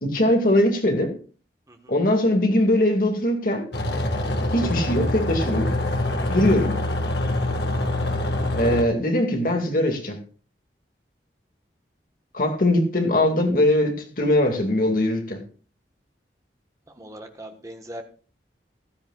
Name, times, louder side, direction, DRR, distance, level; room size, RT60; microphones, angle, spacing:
voice 1, 0.0-1.1 1.9-3.7 4.5-5.7 6.3-6.8 8.6-10.2 12.3-15.4, left 1 dB, 50° left, 2.2 m, -21 dB
sound 1, 3.7-8.8, left 1 dB, 75° left, 1.7 m, -25 dB
voice 2, 17.0-18.0, right 1 dB, 20° right, 1.4 m, -39 dB
15.0 x 12.5 x 2.4 m
head